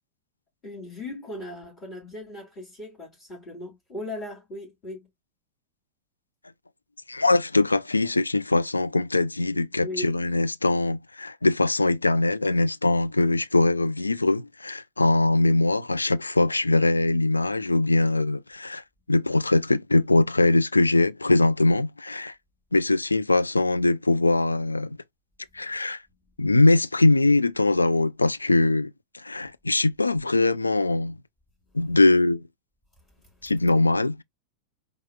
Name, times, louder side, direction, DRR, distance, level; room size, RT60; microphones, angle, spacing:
voice 1, 0.6-5.1 9.8-10.1 33.2-33.3, left 1 dB, 25° left, 3.2 m, -38 dB
voice 2, 7.1-18.8 19.1-22.3 22.7-25.0 25.5-26.0 26.4-31.2 31.7-32.4 33.4-34.2, left 2 dB, 80° left, 0.3 m, -22 dB
4.7 x 3.9 x 2.2 m
figure-of-eight pair, 90°, 0 cm